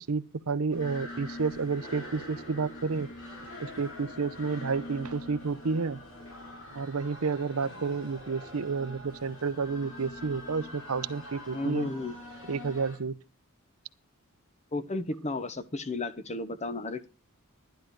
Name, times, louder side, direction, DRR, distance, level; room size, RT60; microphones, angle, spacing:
voice 1, 0.0-3.1 3.6-6.0 6.7-11.9 12.5-13.2, right 4 dB, 80° right, 0.7 m, -31 dB
sound 1, 0.7-13.0, left 1 dB, 65° left, 5.0 m, -44 dB
voice 2, 11.5-12.1 14.7-17.1, left 2 dB, 30° left, 1.0 m, -33 dB
11.5 x 11.0 x 4.7 m
head